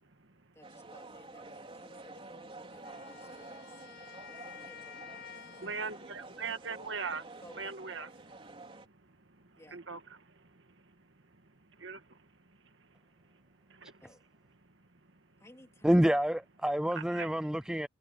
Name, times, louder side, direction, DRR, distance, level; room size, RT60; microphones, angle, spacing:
voice 1, 0.5-3.9 4.3-5.6 7.4-7.8 9.6-9.8 14.0-14.2 15.4-16.2, left 1 dB, 15° left, 3.6 m, -58 dB
sound 1, 0.6-8.9, right 2 dB, 30° right, 4.1 m, -49 dB
Wind instrument woodwind instrument, 2.8-6.2, left 8 dB, 60° left, 6.8 m, -51 dB
voice 2, 5.6-7.2 7.6-8.1 9.7-10.0 11.8-12.0 17.1-17.3, right 5 dB, 65° right, 2.0 m, -38 dB
voice 3, 15.8-17.9, equal, 5° right, 0.4 m, -27 dB
head